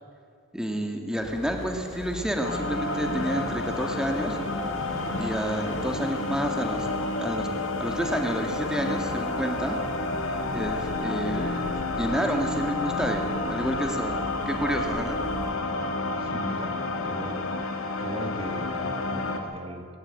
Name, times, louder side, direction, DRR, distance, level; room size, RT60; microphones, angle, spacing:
voice 1, 0.5-4.4 5.2-6.9 7.2-7.5 7.8-9.8 10.5-11.7 12.0-15.2, equal, 5° right, 3 dB, 2.0 m, -29 dB
sound 1, 1.2-15.5, left 1 dB, 65° left, 4.8 m, -40 dB
sound 2, 2.4-19.4, left 2 dB, 85° left, 2.2 m, -30 dB
voice 2, 16.2-17.4 17.7-19.9, right 1 dB, 30° right, 5 dB, 1.8 m, -39 dB
20.5 x 16.5 x 9.0 m, 2.2 s
head